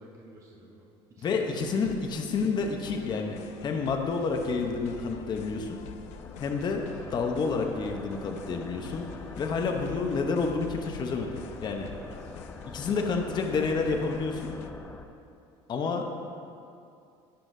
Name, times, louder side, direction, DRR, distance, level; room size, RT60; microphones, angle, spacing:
voice 1, 0.0-2.0 11.9-12.3, right 1 dB, 25° right, -4 dB, 1.1 m, -51 dB
voice 2, 1.2-5.8 6.4-9.1 9.3-11.9 12.7-14.6 15.7-16.1, left 4 dB, 35° left, 3 dB, 0.9 m, -29 dB
sound 1, 1.5-14.7, left 10 dB, 65° left, 0.5 m, -47 dB
sound 2, 4.3-15.1, left 2 dB, 10° left, 0.5 m, -45 dB
17.0 x 5.6 x 2.7 m, 2.5 s
supercardioid pair, 115°, 12 cm